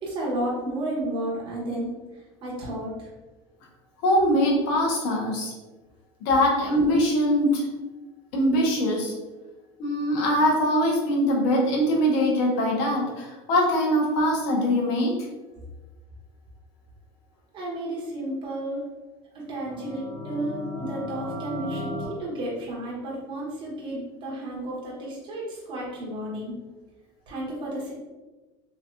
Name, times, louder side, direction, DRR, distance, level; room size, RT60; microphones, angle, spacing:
voice 1, 0.0-3.1 17.5-18.8 19.3-26.5 27.3-27.9, right 1 dB, 35° right, -5 dB, 0.9 m, -32 dB
voice 2, 4.0-5.5 6.2-7.7 8.3-9.1 9.8-15.2, equal, 70° left, -1 dB, 1.0 m, -22 dB
sound 1, 19.5-22.1, left 1 dB, 45° left, 0.8 m, -35 dB
3.2 x 2.8 x 2.4 m, 1.2 s
supercardioid pair, 130°, 14 cm